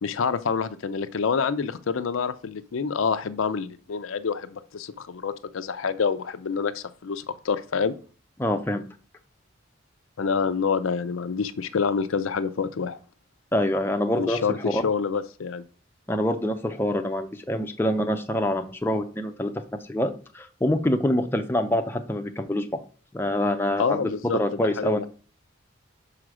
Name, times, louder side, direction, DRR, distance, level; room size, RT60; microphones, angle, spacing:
voice 1, 0.0-7.9 10.2-13.0 14.2-15.6 23.8-25.1, left 5 dB, 85° left, 11 dB, 0.5 m, -27 dB
voice 2, 8.4-8.8 13.5-14.4 14.7-14.8 16.1-19.5 19.9-22.8 23.1-25.1, left 1 dB, 10° left, 5 dB, 0.5 m, -25 dB
5.0 x 4.9 x 6.1 m, 0.39 s
head